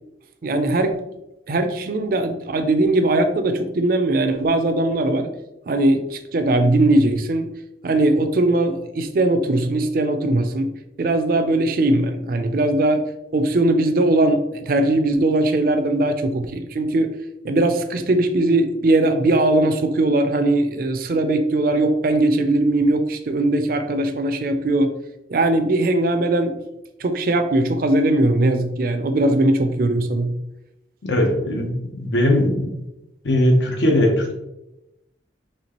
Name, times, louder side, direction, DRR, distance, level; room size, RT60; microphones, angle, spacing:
voice 1, 0.4-1.1 1.5-5.3 5.7-7.5 7.8-10.7 11.0-13.0 13.3-17.1 17.4-24.9 25.3-26.6 27.0-30.3, right 2 dB, 50° right, 7 dB, 0.4 m, -20 dB
voice 2, 31.0-32.8 33.2-34.3, left 1 dB, 75° left, 2 dB, 0.8 m, -19 dB
4.3 x 3.2 x 2.9 m, 0.93 s
head